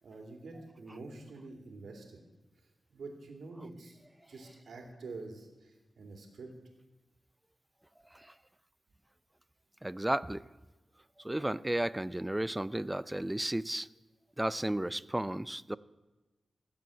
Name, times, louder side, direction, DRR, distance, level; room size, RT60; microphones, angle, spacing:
voice 1, 0.0-2.2 2.9-4.0 4.3-6.5, right 3 dB, 80° right, 3 dB, 2.6 m, -47 dB
voice 2, 9.8-10.5 11.2-13.9 14.4-15.8, right 1 dB, 10° right, 18 dB, 0.4 m, -33 dB
17.0 x 7.7 x 8.4 m, 1.1 s
wide cardioid pair, 95°, 0 cm